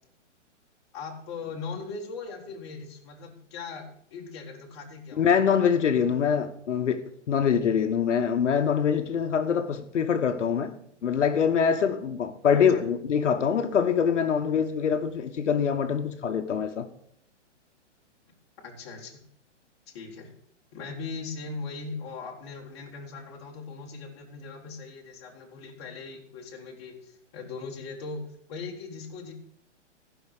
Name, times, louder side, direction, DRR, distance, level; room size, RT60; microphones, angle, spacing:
voice 1, 0.9-5.2 12.5-12.8 18.6-19.2 19.9-20.3 20.7-28.2 28.5-29.3, left 4 dB, 20° left, 1.6 m, -39 dB
voice 2, 5.2-10.8 11.0-16.9, left 7 dB, 75° left, 1.2 m, -24 dB
14.5 x 5.7 x 6.5 m
hypercardioid pair, 180°, 37 cm